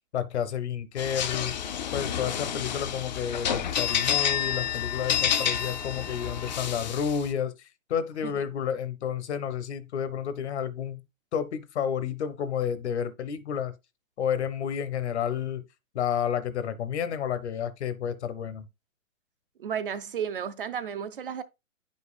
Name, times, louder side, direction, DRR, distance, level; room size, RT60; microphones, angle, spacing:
voice 1, 0.1-1.6 1.9-7.5 7.9-11.0 11.3-13.7 14.2-15.6 15.9-18.7, left 8 dB, 55° left, 0.8 m, -30 dB
sound 1, 1.0-7.3, left 9 dB, 35° left, 0.4 m, -29 dB
voice 2, 19.6-21.4, right 8 dB, 45° right, 0.5 m, -33 dB
9.3 x 5.3 x 2.3 m
hypercardioid pair, 135°, 40 cm